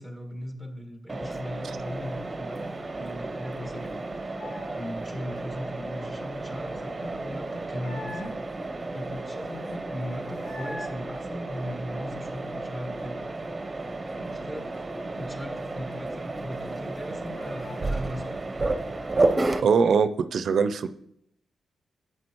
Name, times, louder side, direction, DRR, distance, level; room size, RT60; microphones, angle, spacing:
voice 1, 0.0-4.0 4.7-8.3 8.9-13.2 14.2-14.7 15.1-18.4, equal, 20° left, 3 dB, 1.7 m, -38 dB
Mechanisms, 1.1-19.6, right 2 dB, 20° right, 0.7 m, -32 dB
sound 1, 3.2-4.8 5.1-8.6 9.0-9.1 9.3-10.9 11.3-13.0 13.3-13.4 13.7-16.2 16.4-16.5 16.9-18.0, left 2 dB, 80° left, 1.7 m, -46 dB
voice 2, 19.6-20.9, right 6 dB, 65° right, 11 dB, 0.4 m, -22 dB
9.6 x 7.9 x 3.0 m, 0.73 s
cardioid pair, 95°, 0 cm